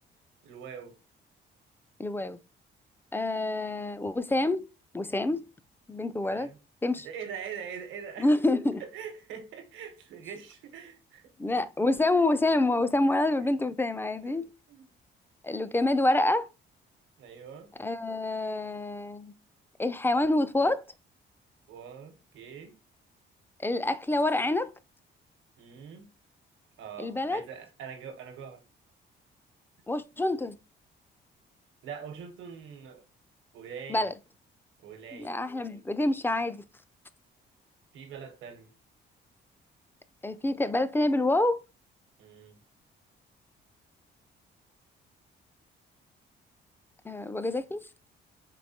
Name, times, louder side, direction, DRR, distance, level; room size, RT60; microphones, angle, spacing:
voice 1, 0.4-1.0 6.2-6.6 7.0-8.3 8.8-11.3 12.1-12.3 14.2-14.9 17.2-17.7 21.7-22.8 25.6-26.1 26.8-28.6 31.8-33.0 33.5-34.1 34.8-35.4 37.9-38.7 42.2-42.6, right 7 dB, 85° right, 1.0 m, -43 dB
voice 2, 2.0-2.4 3.1-4.7 4.9-5.4 5.9-6.5 6.8-7.1 8.2-8.8 11.4-14.5 15.4-16.5 17.8-19.3 19.8-20.8 23.6-24.7 27.0-27.4 29.9-30.6 33.9-34.1 35.1-36.6 40.2-41.6 47.0-48.1, left 2 dB, 10° left, 0.3 m, -27 dB
4.6 x 3.4 x 2.8 m
cardioid pair, 90°, 20 cm